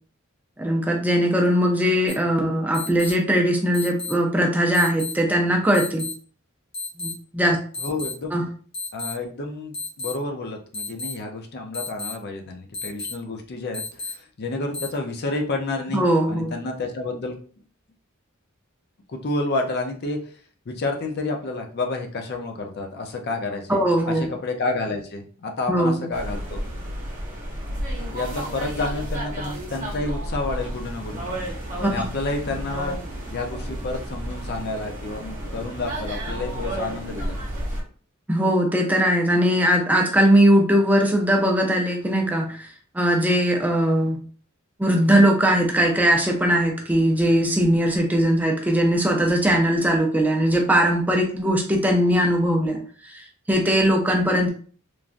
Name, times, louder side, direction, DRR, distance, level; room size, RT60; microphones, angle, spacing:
voice 1, 0.6-6.0 7.0-7.6 8.3-8.4 15.9-16.5 23.7-24.3 25.7-26.0 31.8-31.9 38.3-42.7 42.9-44.2 44.8-52.8 53.1-54.5, equal, 10° right, 1 dB, 0.4 m, -20 dB
sound 1, 2.1-2.2 2.7-3.1 3.7-4.1 4.7-5.1 5.7-6.1 6.7-7.1 7.7-8.1 8.7-9.1 9.7-10.1 10.7-11.1 11.7-12.1 12.7-13.1 13.7-14.1 14.7-14.9, left 3 dB, 30° left, 0.9 m, -31 dB
voice 2, 7.8-8.4 8.9-17.4 19.1-20.2 20.7-26.6 28.1-31.2 31.9-33.0 33.3-37.4, left 2 dB, 50° left, 3 dB, 0.5 m, -30 dB
sound 2, 26.1-37.8, equal, 40° right, 0.9 m, -32 dB
3.1 x 2.4 x 2.5 m, 0.43 s
head